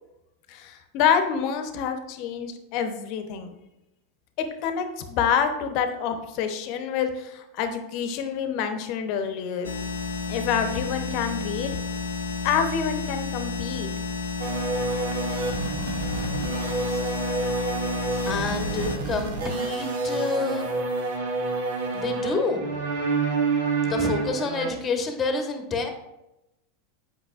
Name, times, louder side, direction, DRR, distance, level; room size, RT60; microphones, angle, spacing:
voice 1, 0.5-3.5 4.4-9.7 10.3-11.8 12.4-13.9, left 7 dB, 55° left, 7 dB, 0.8 m, -27 dB
sound 1, 9.6-19.0, left 4 dB, 90° left, 0.6 m, -31 dB
sound 2, 14.4-24.7, right 3 dB, 75° right, 0.9 m, -28 dB
voice 2, 18.3-20.7 21.9-22.7 23.9-25.9, left 4 dB, 25° left, 5 dB, 1.2 m, -28 dB
8.2 x 5.3 x 2.5 m, 0.91 s
hypercardioid pair, 100°, 0 cm